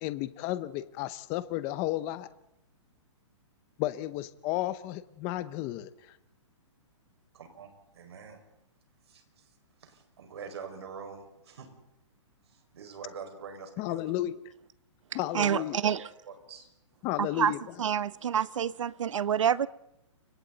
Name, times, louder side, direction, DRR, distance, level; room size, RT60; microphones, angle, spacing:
voice 1, 0.0-2.3 3.8-6.2 13.8-14.3 15.1-15.8 17.0-17.6, left 15 dB, 15° left, 0.7 m, -33 dB
voice 2, 7.3-8.4 9.1-9.5 9.8-11.7 12.4-14.0 15.4-16.7, right 6 dB, 55° right, 5.4 m, -45 dB
voice 3, 15.3-16.0 17.2-17.5 17.8-19.7, right 9 dB, 75° right, 1.0 m, -27 dB
29.5 x 24.5 x 4.0 m
hypercardioid pair, 175°, 16 cm